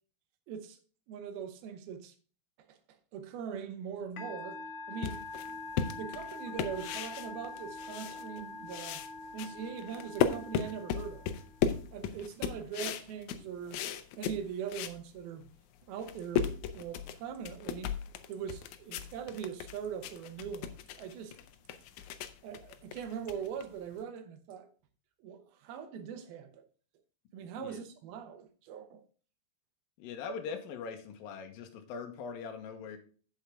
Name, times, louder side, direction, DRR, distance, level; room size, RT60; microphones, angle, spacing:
voice 1, 0.5-0.8 1.1-2.1 2.7-2.8 3.1-4.6 4.9-5.2 5.9-9.0 9.3-11.3 11.9-13.8 14.2-15.5 15.9-17.9 18.3-21.4 22.4-24.7 25.2-26.6 27.3-29.0, right 7 dB, 80° right, 2.8 m, -41 dB
Musical instrument, 4.2-11.8, left 3 dB, 55° left, 1.7 m, -44 dB
sound 1, 5.0-8.4 8.7-15.0 15.4-15.5 15.9-24.0, left 8 dB, 90° left, 1.7 m, -36 dB
voice 2, 30.0-33.0, left 5 dB, 75° left, 2.8 m, -41 dB
8.1 x 8.0 x 3.5 m
omnidirectional pair, 4.4 m